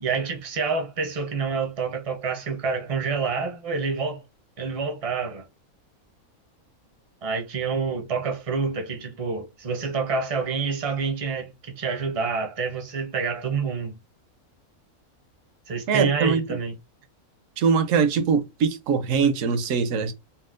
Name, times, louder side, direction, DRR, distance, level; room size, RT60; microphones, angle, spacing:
voice 1, 0.0-4.2 4.6-5.4 7.2-13.9 15.7-16.7, right 5 dB, 40° right, 0.5 m, -27 dB
voice 2, 15.9-16.4 17.6-20.1, right 6 dB, 70° right, 0.9 m, -22 dB
4.1 x 2.0 x 2.4 m
omnidirectional pair, 1.5 m